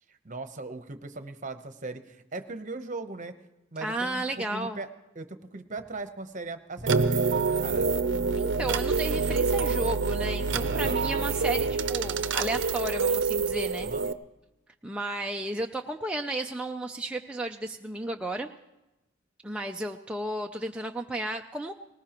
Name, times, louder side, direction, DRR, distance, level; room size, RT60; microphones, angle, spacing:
voice 1, 0.1-3.3 3.7-4.9 5.1-7.9 10.7-11.3 13.8-14.1, right 3 dB, 40° right, 9 dB, 0.9 m, -39 dB
voice 2, 3.8-4.8 8.4-13.9 14.8-18.5 19.4-21.7, right 1 dB, 5° right, 2 dB, 0.4 m, -33 dB
sound 1, 5.8-6.2 6.6-7.4 7.7-9.1 9.5-10.0 10.5-11.1 11.6-12.0 12.5-13.0 13.5-13.6, equal, 25° left, 1.4 m, -48 dB
sound 2, 6.9-14.1, right 4 dB, 65° right, 0.6 m, -26 dB
20.0 x 19.0 x 3.0 m, 0.98 s
head